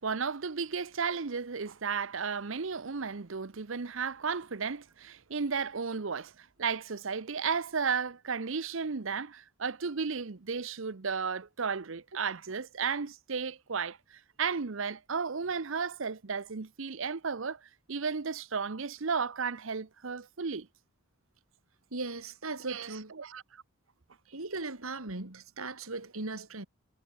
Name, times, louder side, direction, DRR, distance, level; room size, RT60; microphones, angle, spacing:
voice 1, 0.0-20.7 22.6-23.4, right 5 dB, 65° right, 0.8 m, -34 dB
voice 2, 21.9-23.1 24.3-26.7, right 3 dB, 90° right, 2.9 m, -38 dB
head